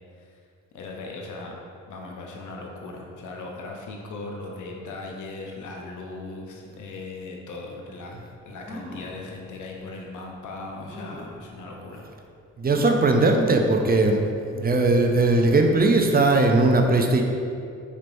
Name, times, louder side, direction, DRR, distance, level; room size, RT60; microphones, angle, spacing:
voice 1, 0.7-1.6 1.9-8.1 8.5-12.1, left 3 dB, 60° left, 0 dB, 0.7 m, -38 dB
sound 1, 8.6-9.2 9.9-10.0 10.9-11.4 12.7-13.2 13.7-13.8 14.1-14.2, left 1 dB, 5° left, 1.4 m, -40 dB
voice 2, 12.6-14.2 14.5-17.2, right 2 dB, 30° right, 3 dB, 0.5 m, -19 dB
4.3 x 3.0 x 2.6 m, 2.4 s
hypercardioid pair, 40°, 34 cm